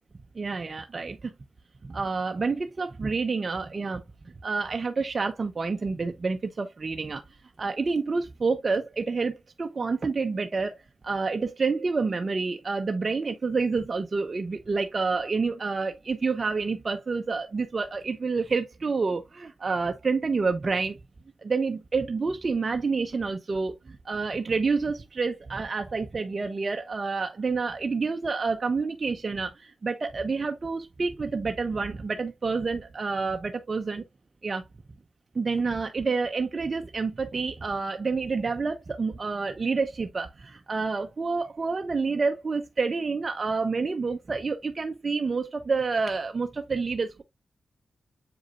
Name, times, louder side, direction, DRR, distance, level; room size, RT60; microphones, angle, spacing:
voice 1, 0.3-1.3 1.8-4.0 4.4-7.2 7.6-21.0 21.4-34.0 34.4-34.6 35.3-47.2, right 4 dB, 50° right, 0.9 m, -28 dB
7.8 x 4.8 x 2.5 m
supercardioid pair, 40°, 0 cm